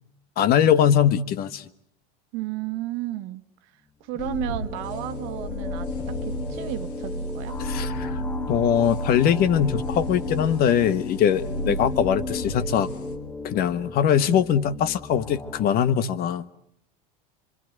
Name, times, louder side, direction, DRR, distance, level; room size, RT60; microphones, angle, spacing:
voice 1, 0.4-1.6 7.6-8.2 8.5-12.9 13.4-16.4, left 9 dB, 50° left, 13 dB, 1.3 m, -22 dB
voice 2, 2.3-3.5 4.1-7.5 11.6-11.8, right 15 dB, 65° right, 11 dB, 1.5 m, -33 dB
sound 1, 4.1-15.7, left 3 dB, 15° left, 1.1 m, -38 dB
sound 2, 4.2-13.2, left 1 dB, 80° left, 3.1 m, -32 dB
25.5 x 25.0 x 8.1 m, 0.69 s
supercardioid pair, 105°, 20 cm